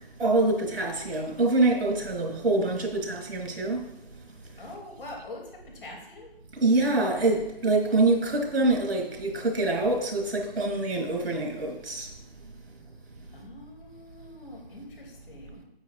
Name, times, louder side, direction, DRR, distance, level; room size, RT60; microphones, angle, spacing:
voice 1, 0.2-3.9 6.6-12.1, right 2 dB, 70° right, 3.2 m, -25 dB
voice 2, 4.6-6.3 13.3-15.6, left 2 dB, 60° left, 3.2 m, -44 dB
10.0 x 9.0 x 2.6 m
figure-of-eight pair, 145°, 31 cm